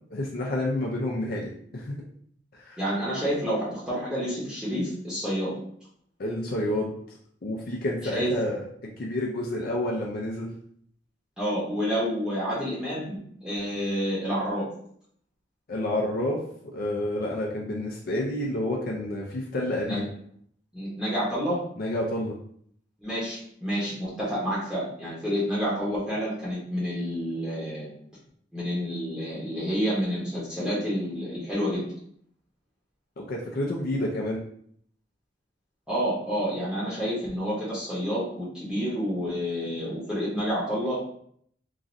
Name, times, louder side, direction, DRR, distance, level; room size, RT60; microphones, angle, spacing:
voice 1, 0.1-2.0 2.6-2.8 6.2-6.9 7.4-10.5 15.7-20.1 21.8-22.3 33.2-34.4, left 1 dB, 55° left, -2 dB, 0.5 m, -29 dB
voice 2, 2.8-5.5 8.1-8.3 11.4-13.2 13.4-14.7 19.9-20.1 20.7-21.6 23.0-27.9 28.5-31.9 35.9-41.1, equal, 5° right, -9 dB, 0.8 m, -29 dB
3.0 x 2.5 x 2.6 m, 0.64 s
head